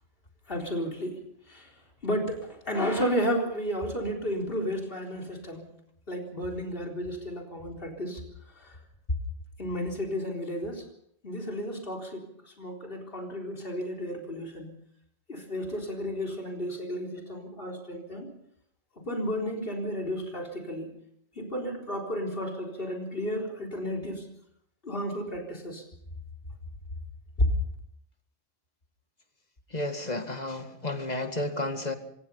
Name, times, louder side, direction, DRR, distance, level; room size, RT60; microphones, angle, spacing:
voice 1, 0.5-1.2 1.5-1.7 2.0-5.6 6.1-8.2 8.6-8.8 9.6-10.8 11.2-14.7 15.3-18.3 19.0-20.9 21.4-24.3 24.8-25.8 27.4-27.5, equal, 60° left, 1 dB, 4.2 m, -32 dB
voice 2, 29.7-31.9, left 2 dB, 40° left, 7 dB, 2.1 m, -32 dB
25.5 x 19.5 x 5.6 m, 0.72 s
omnidirectional pair, 1.1 m